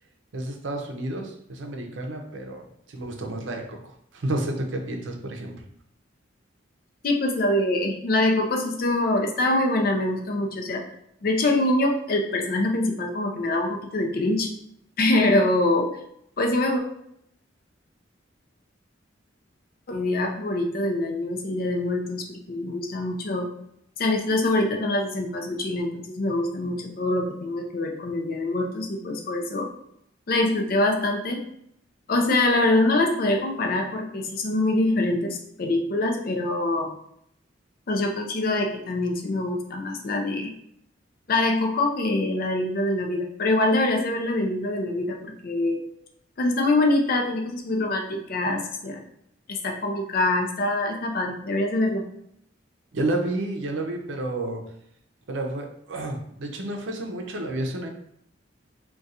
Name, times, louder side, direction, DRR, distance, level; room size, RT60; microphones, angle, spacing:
voice 1, 0.3-5.5 52.9-54.6 55.3-57.9, right 1 dB, 80° right, 3 dB, 0.6 m, -30 dB
voice 2, 7.0-10.8 11.2-14.5 15.0-15.9 16.4-16.8 19.9-23.5 24.0-29.7 30.3-31.4 32.1-37.0 37.9-40.6 41.3-45.8 46.4-49.0 49.5-52.1, left 2 dB, 50° left, 3 dB, 0.5 m, -24 dB
2.4 x 2.3 x 4.0 m, 0.73 s
head